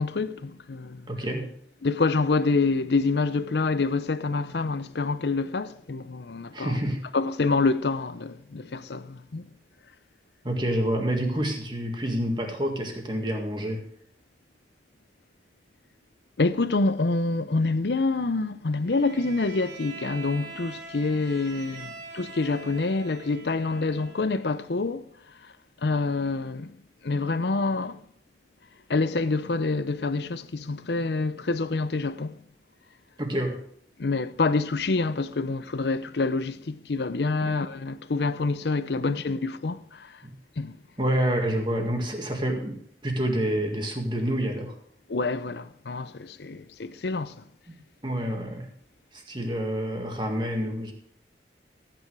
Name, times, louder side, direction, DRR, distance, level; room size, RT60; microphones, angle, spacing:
voice 1, 0.0-1.0 1.8-6.8 7.1-9.5 16.4-25.0 25.8-26.7 27.0-28.0 28.9-32.3 34.0-39.8 40.6-40.8 45.1-47.3, left 3 dB, 75° left, 0.6 m, -27 dB
voice 2, 1.1-1.5 6.5-7.1 10.4-13.8 33.2-33.6 37.4-37.5 39.0-39.1 40.2-40.3 41.0-42.8 43.0-44.7 47.7-47.8 48.0-48.7 49.1-50.9, equal, 25° right, 2.0 m, -28 dB
Bowed string instrument, 18.8-24.5, right 3 dB, 90° right, 3.1 m, -43 dB
13.5 x 9.0 x 4.8 m
head